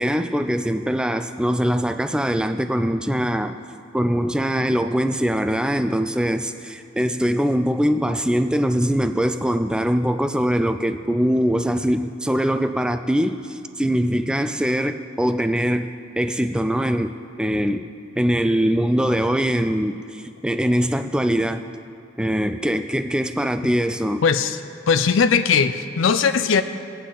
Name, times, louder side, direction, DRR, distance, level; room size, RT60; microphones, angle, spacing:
voice 1, 0.0-3.6 3.9-15.9 16.2-17.9 18.2-21.6 22.2-24.2, equal, 5° right, 9 dB, 0.3 m, -22 dB
voice 2, 24.2-24.6 24.9-26.6, left 6 dB, 85° left, 10 dB, 0.4 m, -19 dB
19.5 x 8.3 x 3.9 m, 2.5 s
head